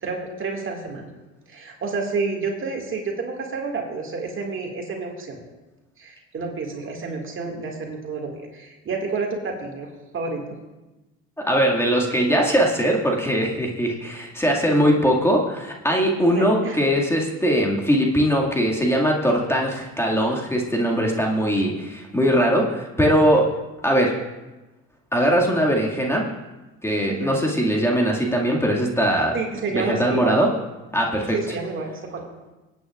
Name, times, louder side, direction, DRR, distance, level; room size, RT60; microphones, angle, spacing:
voice 1, 0.0-1.1 1.5-5.4 6.0-10.6 12.8-12.9 16.3-16.8 27.1-27.4 29.3-30.4 31.3-32.3, right 4 dB, 45° right, 2 dB, 2.1 m, -29 dB
voice 2, 11.5-23.5 23.8-24.1 25.1-26.3 26.8-29.3 29.7-30.5 30.9-31.4, equal, 10° left, -1 dB, 2.1 m, -21 dB
24.5 x 9.0 x 2.5 m, 1.1 s
supercardioid pair, 80°, 29 cm